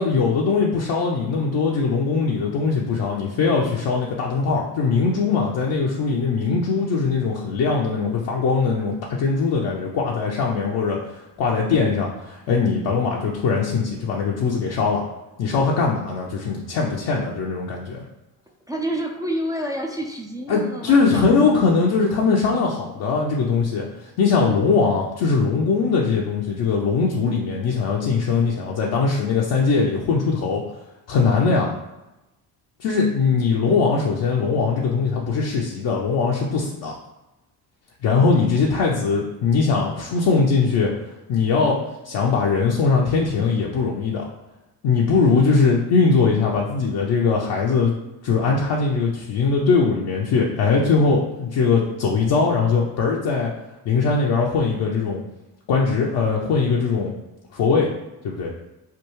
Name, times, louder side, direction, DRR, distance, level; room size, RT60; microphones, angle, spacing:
voice 1, 0.0-11.0 11.4-15.0 15.4-18.0 20.5-30.6 31.1-31.7 32.8-36.9 38.0-40.9 41.3-41.8 42.0-44.3 44.8-47.9 48.2-53.5 53.8-55.2 55.7-57.1 57.5-57.9 58.2-58.5, left 4 dB, 55° left, -3 dB, 0.7 m, -21 dB
voice 2, 18.7-21.6 33.0-33.5, right 1 dB, 10° right, -1 dB, 0.4 m, -30 dB
3.4 x 2.3 x 3.1 m, 0.97 s
hypercardioid pair, 60°, 47 cm